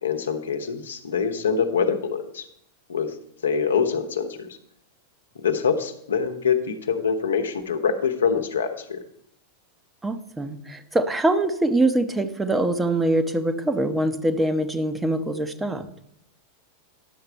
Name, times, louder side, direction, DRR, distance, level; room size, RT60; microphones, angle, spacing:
voice 1, 0.0-2.5 2.9-3.1 3.4-4.5 5.3-9.0, left 6 dB, 70° left, 7 dB, 1.0 m, -25 dB
voice 2, 10.0-15.8, right 1 dB, 10° right, 9 dB, 0.8 m, -23 dB
11.0 x 6.8 x 4.4 m, 0.72 s
figure-of-eight pair, 90°, 0 cm